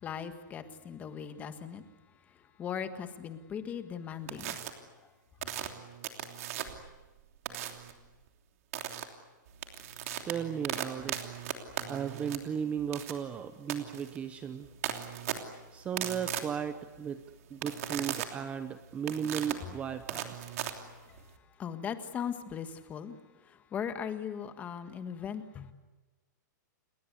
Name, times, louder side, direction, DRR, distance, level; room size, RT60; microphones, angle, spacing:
voice 1, 0.0-1.8 2.3-4.6 21.1-21.2 21.6-23.2 23.4-25.7, left 8 dB, 15° left, 9 dB, 1.5 m, -39 dB
sound 1, 4.3-4.7 5.4-6.9 7.5-7.9 8.7-9.0 9.5-21.4, right 11 dB, 50° right, 3.1 m, -38 dB
voice 2, 10.2-11.4 11.9-14.7 15.7-17.2 17.5-20.4, right 8 dB, 15° right, 10 dB, 0.8 m, -35 dB
30.0 x 20.5 x 8.3 m, 1.2 s
hypercardioid pair, 165°, 10 cm